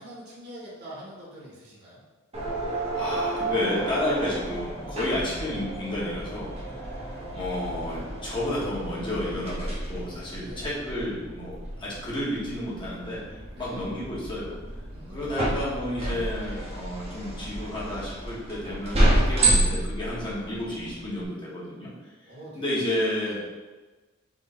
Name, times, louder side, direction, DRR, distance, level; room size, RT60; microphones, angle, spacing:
voice 1, 0.0-2.0 6.8-7.4 10.4-10.7 13.5-13.8 14.9-15.5 19.5-19.7 20.2-20.8 22.2-22.9 23.2-23.4, right 1 dB, 50° right, -6 dB, 1.5 m, -45 dB
sound 1, 2.3-21.2, right 1 dB, 30° right, 1.0 m, -30 dB
voice 2, 2.9-6.5 6.8-7.0 7.3-14.5 15.1-21.9 22.5-23.4, left 1 dB, 20° left, -7 dB, 1.1 m, -31 dB
3.7 x 3.2 x 4.2 m, 1.3 s
head